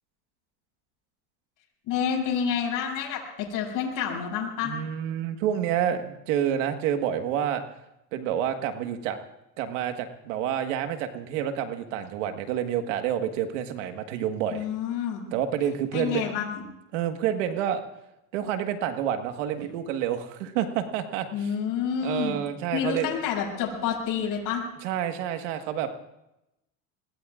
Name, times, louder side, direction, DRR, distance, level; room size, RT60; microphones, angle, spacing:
voice 1, 1.9-3.2 3.5-4.7 14.5-15.3 15.9-16.6 21.3-22.4 22.7-24.6, left 7 dB, 60° left, -2 dB, 7.5 m, -28 dB
voice 2, 4.6-7.6 8.1-9.2 9.6-14.7 15.3-16.2 16.9-17.8 18.3-21.5 22.0-23.1 24.8-26.0, right 9 dB, 80° right, 7 dB, 1.6 m, -28 dB
26.5 x 21.0 x 2.5 m, 0.88 s
supercardioid pair, 105°, 36 cm